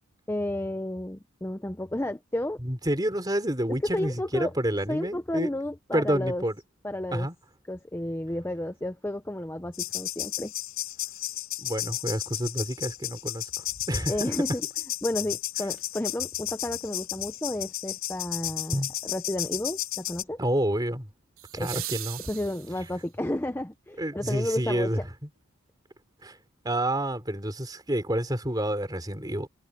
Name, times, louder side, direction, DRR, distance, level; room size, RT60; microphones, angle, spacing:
voice 1, 0.3-2.6 3.9-4.5 4.9-6.4 6.8-7.3 7.7-10.5 14.1-14.6 15.0-20.4 21.6-21.8 22.3-25.0, left 1 dB, 10° left, 0.6 m, -32 dB
voice 2, 2.6-5.5 5.9-6.6 7.1-7.4 11.6-14.3 18.7-18.9 20.4-21.1 21.5-22.2 24.0-25.0 26.2-26.4 26.6-29.5, right 1 dB, 20° right, 3.5 m, -29 dB
sound 1, 9.7-20.2, left 14 dB, 75° left, 4.9 m, -33 dB
sound 2, 15.7-15.8 21.4-23.2 25.3-25.4, right 14 dB, 75° right, 2.8 m, -39 dB
head